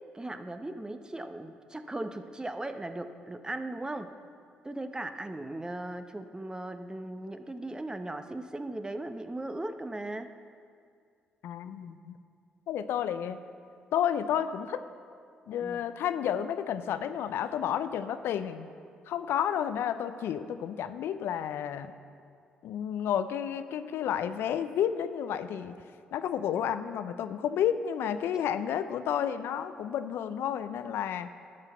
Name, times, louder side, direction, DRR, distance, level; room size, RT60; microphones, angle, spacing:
voice 1, 0.1-4.1 4.6-10.3 15.6-15.8, right 1 dB, 20° right, 9 dB, 0.8 m, -38 dB
voice 2, 11.4-12.2 12.7-13.4 13.9-14.8 15.5-18.7 19.1-21.9 22.6-25.7 26.1-31.3, left 9 dB, 70° left, 11 dB, 0.5 m, -31 dB
11.5 x 5.6 x 8.0 m, 2.2 s
hypercardioid pair, 45°, 4 cm